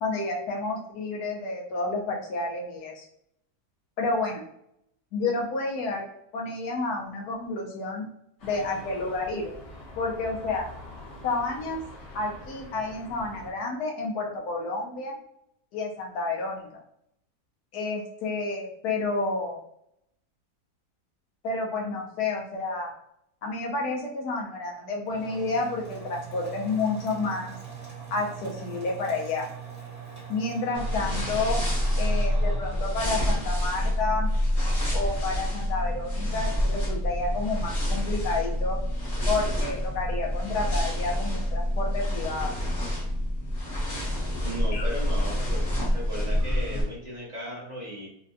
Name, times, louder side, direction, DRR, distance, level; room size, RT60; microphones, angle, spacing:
voice 1, 0.0-3.0 4.0-4.4 5.1-6.0 6.3-8.1 8.4-9.5 10.0-10.6 11.2-11.8 12.1-15.2 15.7-16.7 17.7-19.6 21.4-22.9 23.4-27.5 28.1-29.5 30.3-31.6 32.0-34.3 34.9-38.8 39.3-42.6 44.7-44.9, left 3 dB, 70° left, 0 dB, 1.3 m, -30 dB
sound 1, 8.4-13.5, left 1 dB, 55° left, 1.5 m, -44 dB
sound 2, 25.1-34.6, right 6 dB, 10° left, 0.8 m, -42 dB
sound 3, 30.7-46.8, equal, 40° left, 0.9 m, -27 dB
voice 2, 44.4-45.7 45.9-48.1, equal, 85° right, -5 dB, 0.3 m, -36 dB
3.8 x 2.2 x 2.6 m, 0.75 s
omnidirectional pair, 1.8 m